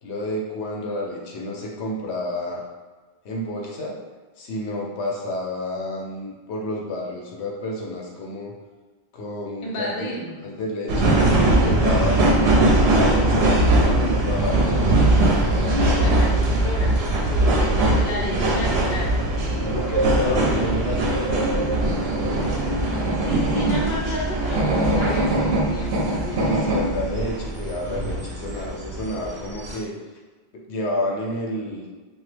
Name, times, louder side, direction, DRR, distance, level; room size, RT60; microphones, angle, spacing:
voice 1, 0.0-2.6 3.2-4.0 4.4-8.5 9.1-10.1 10.4-11.2 11.5-15.0 19.6-21.4 26.4-29.9 30.5-31.8, left 1 dB, 85° left, -2 dB, 0.9 m, -30 dB
voice 2, 9.6-10.5 15.6-19.3 22.1-26.7, equal, 55° left, -3 dB, 0.7 m, -31 dB
sound 1, 10.9-29.8, right 1 dB, 75° right, 0.8 m, -21 dB
2.9 x 2.3 x 3.2 m, 1.3 s
omnidirectional pair, 1.1 m